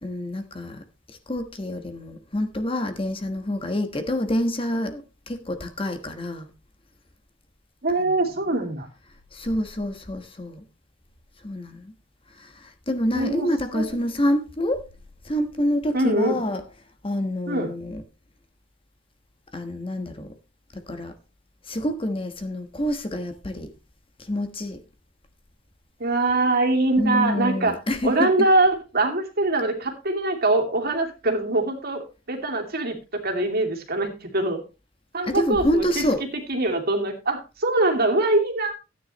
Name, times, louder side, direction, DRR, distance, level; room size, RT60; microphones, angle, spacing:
voice 1, 0.0-0.8 1.3-6.5 9.3-10.6 11.4-11.9 12.4-12.5 12.9-14.8 15.2-16.6 17.0-18.0 19.5-20.3 20.7-21.1 21.7-23.7 24.3-24.8 27.0-28.3 35.2-36.2, left 1 dB, 30° left, 1.3 m, -27 dB
voice 2, 7.8-8.9 13.1-14.1 15.9-16.4 17.5-17.7 26.0-27.8 28.0-34.6 35.1-38.7, right 2 dB, 50° right, 2.6 m, -23 dB
14.0 x 9.6 x 3.1 m
head